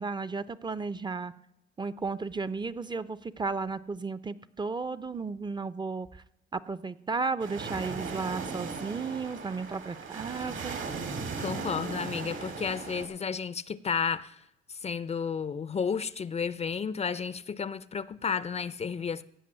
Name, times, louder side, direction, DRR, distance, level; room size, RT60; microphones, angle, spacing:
voice 1, 0.0-1.3 1.8-6.2 6.5-10.8, right 4 dB, 20° right, 15 dB, 0.5 m, -34 dB
sound 1, 7.4-13.1, right 4 dB, 70° right, 2.6 m, -37 dB
voice 2, 11.4-19.2, left 6 dB, 35° left, 17 dB, 0.4 m, -32 dB
16.0 x 5.4 x 8.5 m, 0.82 s
cardioid pair, 90°, 20 cm